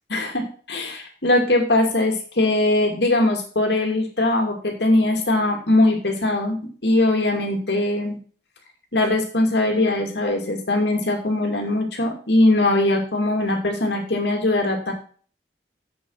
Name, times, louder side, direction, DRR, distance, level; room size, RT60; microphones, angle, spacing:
voice 1, 0.1-6.6 6.8-8.2 8.9-14.9, left 2 dB, 75° left, 3 dB, 2.5 m, -21 dB
7.7 x 7.2 x 5.6 m, 0.43 s
head